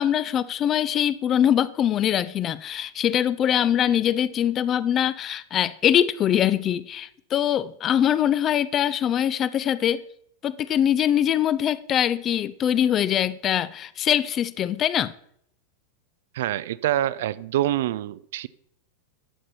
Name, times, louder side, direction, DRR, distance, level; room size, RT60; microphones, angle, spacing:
voice 1, 0.0-10.0 10.4-15.1, left 10 dB, 30° left, 0.4 m, -23 dB
voice 2, 16.3-18.5, right 13 dB, 55° right, 0.3 m, -26 dB
12.0 x 7.5 x 4.2 m
figure-of-eight pair, 90°, 0 cm